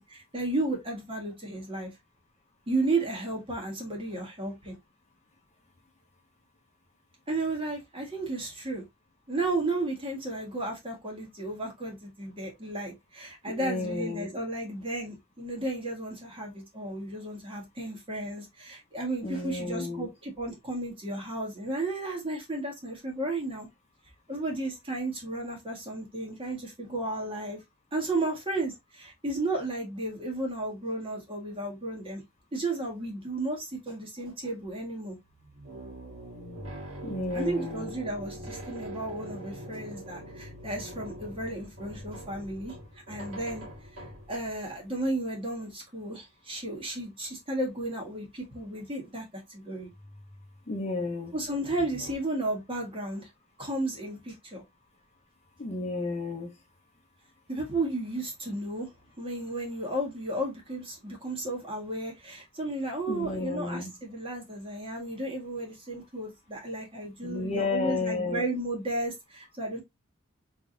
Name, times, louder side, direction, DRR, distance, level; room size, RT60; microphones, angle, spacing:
voice 1, 0.0-1.9 2.7-4.7 7.3-8.8 9.3-23.7 24.3-27.6 27.9-32.2 32.5-35.2 37.3-42.8 43.1-43.6 43.9-49.9 51.3-53.3 53.6-54.6 57.5-58.9 59.2-69.8, right 2 dB, 25° right, 1.6 m, -33 dB
voice 2, 13.5-14.3 19.2-20.1 37.0-37.9 50.7-51.3 55.6-56.5 63.1-63.9 67.2-68.5, left 3 dB, 30° left, 0.8 m, -32 dB
sound 1, 34.6-44.6 49.9-50.6 51.3-52.2, right 1 dB, 75° right, 1.8 m, -43 dB
3.7 x 3.5 x 2.7 m
head